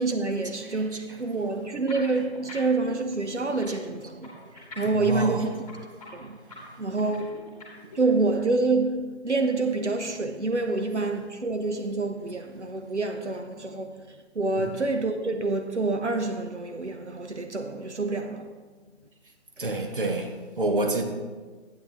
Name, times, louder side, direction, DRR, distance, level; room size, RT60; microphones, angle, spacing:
voice 1, 0.0-5.6 6.1-6.4 6.8-7.4 7.9-14.1 14.3-18.5, right 3 dB, 80° right, 0.9 m, -27 dB
voice 2, 0.6-1.6 2.1-2.3 3.7-3.8 4.4-7.2 10.6-11.3 14.6-14.7 19.6-21.0, right 2 dB, 50° right, 1.2 m, -32 dB
sound 1, 1.7-2.9 3.1-8.0, left 3 dB, 5° left, 1.9 m, -44 dB
11.5 x 9.4 x 3.5 m
figure-of-eight pair, 155°, 34 cm